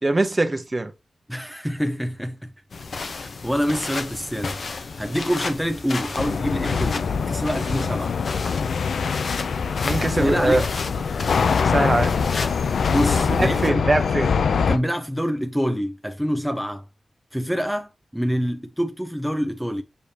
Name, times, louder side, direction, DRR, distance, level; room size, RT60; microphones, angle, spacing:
voice 1, 0.0-0.9 9.8-10.7 11.6-12.2 13.3-14.3, right 2 dB, 35° right, 1.1 m, -22 dB
voice 2, 1.3-2.5 3.0-4.6 5.0-8.1 10.0-10.6 12.9-13.8 14.7-16.8 17.3-19.8, equal, ahead, 0.8 m, -26 dB
sound 1, 2.7-13.7, left 4 dB, 70° left, 0.9 m, -33 dB
sound 2, 6.2-14.8, left 5 dB, 90° left, 0.5 m, -23 dB
6.9 x 5.0 x 2.9 m
cardioid pair, 65°, 0 cm